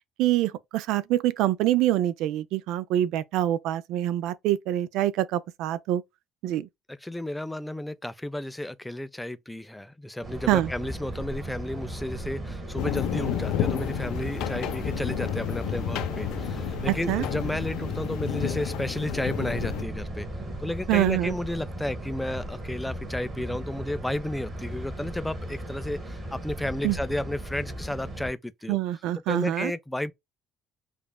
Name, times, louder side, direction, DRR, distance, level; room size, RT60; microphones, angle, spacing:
voice 1, 0.2-6.0 6.4-6.7 10.5-10.7 16.9-17.3 20.9-21.3 26.8-27.0 28.7-29.7, right 13 dB, 75° right, 0.4 m, -25 dB
voice 2, 6.9-20.3 20.6-28.8 29.3-30.1, left 1 dB, 5° left, 0.3 m, -32 dB
sound 1, 10.2-28.3, right 1 dB, 25° right, 1.4 m, -36 dB
sound 2, 12.7-19.8, left 10 dB, 80° left, 0.6 m, -31 dB
5.0 x 2.4 x 2.2 m
cardioid pair, 155°, 0 cm